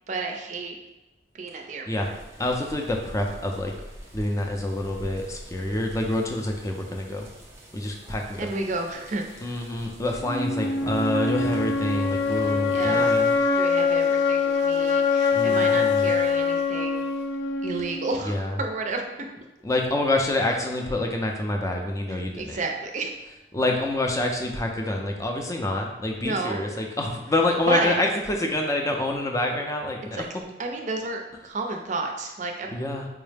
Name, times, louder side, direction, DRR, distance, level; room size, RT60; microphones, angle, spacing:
voice 1, 0.1-0.8 1.3-2.1 8.4-9.2 12.7-13.2 13.5-17.1 17.6-19.0 22.1-23.2 26.2-26.7 27.7-28.1 30.1-30.3 30.6-32.7, right 3 dB, 45° right, 3 dB, 0.5 m, -31 dB
sound 1, 2.0-13.4, right 1 dB, 15° right, 0.8 m, -44 dB
voice 2, 2.4-3.7 4.1-7.3 7.7-8.5 9.4-13.3 15.3-16.1 18.2-18.6 19.6-22.6 23.5-30.2 32.7-33.1, left 1 dB, 20° left, 2 dB, 0.4 m, -27 dB
sound 2, 10.3-18.2, left 5 dB, 75° left, 0.4 m, -23 dB
4.6 x 2.0 x 3.3 m, 1.0 s
head